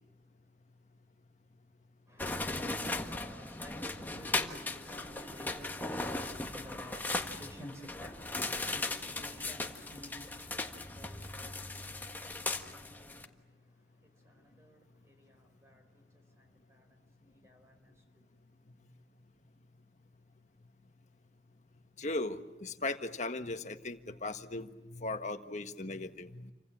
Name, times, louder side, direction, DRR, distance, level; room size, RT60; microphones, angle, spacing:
voice 1, 2.1-18.3, equal, 15° right, 4.7 m, -54 dB
sound 1, 2.2-13.3, left 2 dB, 10° left, 1.5 m, -38 dB
voice 2, 22.0-26.4, left 2 dB, 40° left, 1.5 m, -38 dB
29.5 x 25.5 x 7.5 m
head